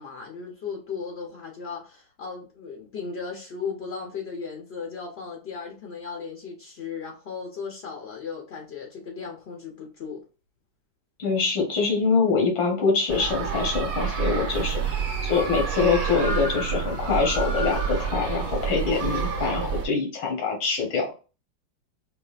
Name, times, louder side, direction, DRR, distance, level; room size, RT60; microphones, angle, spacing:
voice 1, 0.0-10.2, left 5 dB, 65° left, 0.6 m, -36 dB
voice 2, 11.2-15.0 15.2-21.1, left 4 dB, 85° left, 1.8 m, -24 dB
sound 1, 13.1-19.8, right 6 dB, 50° right, 0.9 m, -28 dB
5.3 x 2.3 x 2.4 m
omnidirectional pair, 2.1 m